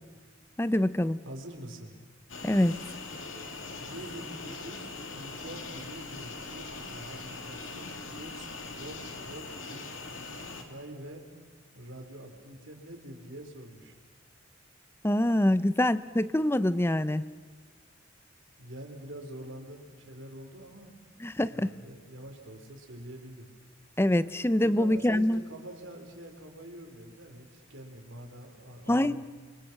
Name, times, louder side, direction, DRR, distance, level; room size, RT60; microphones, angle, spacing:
voice 1, 0.6-1.2 2.4-2.7 15.0-17.2 21.2-21.7 24.0-25.4 28.9-29.2, left 1 dB, 10° left, 15 dB, 0.6 m, -25 dB
voice 2, 1.2-2.0 3.8-11.2 11.7-14.0 18.6-20.9 21.5-23.5 24.6-29.3, right 1 dB, 85° right, 4 dB, 4.0 m, -45 dB
sound 1, 2.3-10.6, left 3 dB, 85° left, 2.9 m, -41 dB
29.5 x 25.0 x 6.0 m, 1.5 s
head